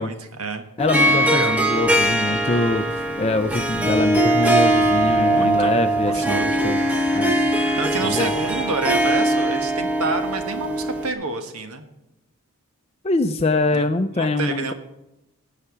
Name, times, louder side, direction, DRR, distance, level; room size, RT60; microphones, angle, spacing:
voice 1, 0.0-0.6 1.0-1.6 5.1-5.8 6.0-6.6 7.8-11.8 13.7-13.8 14.1-14.7, right 3 dB, 85° right, 7 dB, 1.5 m, -28 dB
voice 2, 0.8-7.4 8.0-8.3 13.0-14.7, left 2 dB, 25° left, 7 dB, 0.4 m, -24 dB
Harp, 0.8-11.1, right 1 dB, 5° right, 0.8 m, -21 dB
Thunder / Rain, 1.6-10.5, equal, 60° right, 5.8 m, -43 dB
sound 1, 6.7-8.9 9.2-11.3, right 3 dB, 45° right, 2.2 m, -43 dB
16.5 x 5.8 x 7.2 m, 0.93 s
head